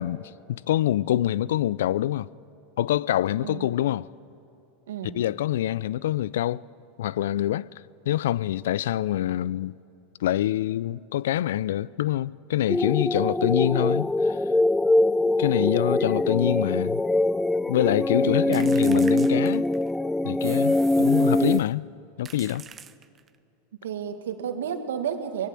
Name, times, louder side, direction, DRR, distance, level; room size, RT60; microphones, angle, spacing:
voice 1, 0.0-2.3 2.8-4.1 5.1-6.6 7.0-7.7 8.1-9.7 10.2-14.4 15.4-17.0 17.7-19.6 20.2-21.9 22.2-22.6, left 13 dB, 75° left, 0.4 m, -25 dB
voice 2, 4.9-5.2 18.2-18.8 23.8-25.5, right 8 dB, 85° right, 1.9 m, -32 dB
sound 1, 12.7-21.6, left 2 dB, 10° left, 0.4 m, -23 dB
sound 2, 18.5-20.0 20.4-21.7 22.2-23.4, right 7 dB, 30° right, 0.9 m, -43 dB
24.0 x 20.0 x 7.6 m
hypercardioid pair, 100°, 0 cm